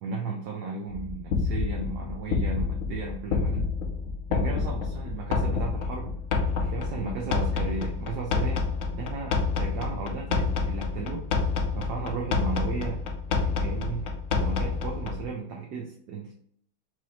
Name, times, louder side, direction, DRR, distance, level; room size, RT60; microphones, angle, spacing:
voice 1, 0.0-3.7 4.3-6.1 6.6-8.6 8.9-11.3 11.7-13.0 13.3-16.3, right 5 dB, 65° right, -1 dB, 1.1 m, -35 dB
sound 1, 0.9-15.3, left 4 dB, 85° left, 0.7 m, -28 dB
6.2 x 2.7 x 2.9 m, 0.66 s
omnidirectional pair, 2.1 m